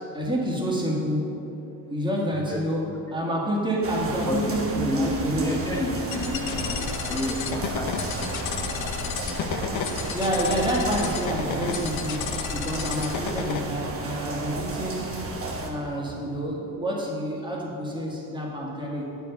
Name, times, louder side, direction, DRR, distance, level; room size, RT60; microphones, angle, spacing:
voice 1, 0.0-1.5 1.9-5.6 10.1-15.1 15.6-19.2, right 1 dB, 10° right, -4 dB, 1.8 m, -28 dB
sound 1, 3.8-15.7, right 2 dB, 30° right, 1.2 m, -33 dB
voice 2, 4.3-4.6 4.9-9.4, left 1 dB, 5° left, 1 dB, 1.0 m, -31 dB
sound 2, 6.1-13.6, left 6 dB, 70° left, 0.8 m, -32 dB
8.6 x 4.8 x 6.6 m, 3.0 s
cardioid pair, 105°, 47 cm